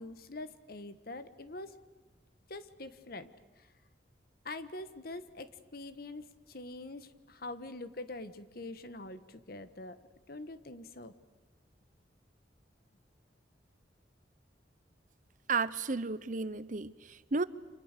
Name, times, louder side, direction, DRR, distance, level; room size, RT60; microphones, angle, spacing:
voice 1, 0.0-1.8 2.5-3.3 3.6-3.7 4.4-10.0 10.3-11.1, left 2 dB, 55° left, 11 dB, 1.4 m, -44 dB
voice 2, 15.5-17.4, right 4 dB, 45° right, 16 dB, 0.8 m, -33 dB
30.0 x 26.5 x 6.7 m, 1.2 s
head